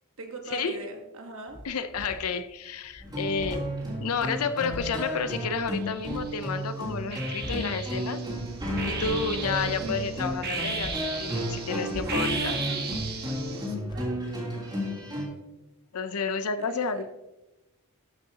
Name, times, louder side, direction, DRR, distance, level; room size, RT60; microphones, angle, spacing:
voice 1, 0.2-1.6 9.6-10.0 11.9-12.9 13.5-13.6 13.9-14.2 16.6-17.1, right 2 dB, 65° right, 3 dB, 1.3 m, -40 dB
sound 1, 1.5-2.4 2.7-6.4 6.8-7.8 8.2-8.6 8.9-9.3 10.2-13.6 13.9-14.2, left 1 dB, 20° left, 0.8 m, -43 dB
voice 2, 1.6-3.7 4.0-8.2 8.9-10.9 11.2-12.6 15.9-17.1, left 5 dB, 80° left, 12 dB, 0.6 m, -30 dB
sound 2, 3.0-15.2, equal, 20° right, 3.2 m, -33 dB
sound 3, 5.7-6.5 7.1-13.7, right 5 dB, 45° right, 1.4 m, -36 dB
13.0 x 6.4 x 2.8 m, 1.0 s
head